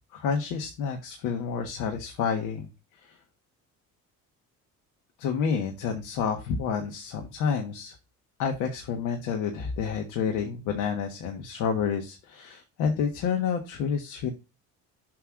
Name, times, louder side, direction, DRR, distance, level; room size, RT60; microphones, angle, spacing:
voice 1, 0.0-3.2 5.2-7.9 8.4-14.3, left 6 dB, 80° left, 3 dB, 1.5 m, -29 dB
7.7 x 3.2 x 6.2 m, 0.28 s
cardioid pair, 180°, 30 cm